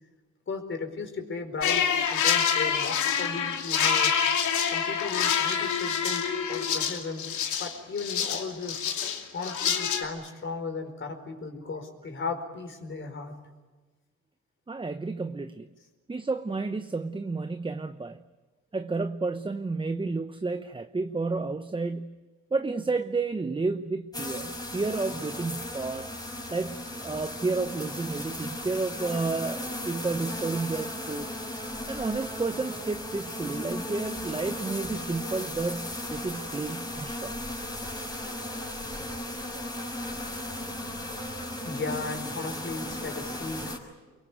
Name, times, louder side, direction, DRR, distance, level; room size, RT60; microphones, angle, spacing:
voice 1, 0.5-4.2 4.7-7.3 7.6-8.8 9.3-13.4 41.6-43.7, left 4 dB, 40° left, 6 dB, 4.7 m, -36 dB
sound 1, 1.6-10.0, left 7 dB, 75° left, 2.9 m, -26 dB
voice 2, 14.7-15.7 16.1-18.2 18.7-22.2 22.5-26.1 26.5-31.3 31.9-37.4 40.4-40.5 41.1-41.2, right 3 dB, 15° right, 10 dB, 0.9 m, -31 dB
sound 2, 24.1-43.8, left 1 dB, 15° left, 5.5 m, -36 dB
24.0 x 23.0 x 9.4 m, 1.3 s
cardioid pair, 90°, 30 cm